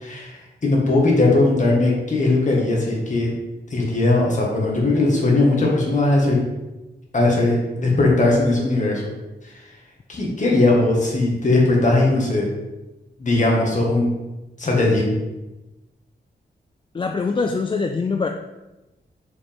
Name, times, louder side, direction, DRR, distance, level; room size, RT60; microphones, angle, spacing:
voice 1, 0.0-3.3 3.7-6.4 7.1-9.0 10.1-12.5 13.2-14.1 14.6-15.1, left 2 dB, 45° left, -2 dB, 1.9 m, -19 dB
voice 2, 16.9-18.3, left 4 dB, 30° left, 5 dB, 0.4 m, -23 dB
6.4 x 4.9 x 3.6 m, 1.1 s
wide cardioid pair, 115°, 18 cm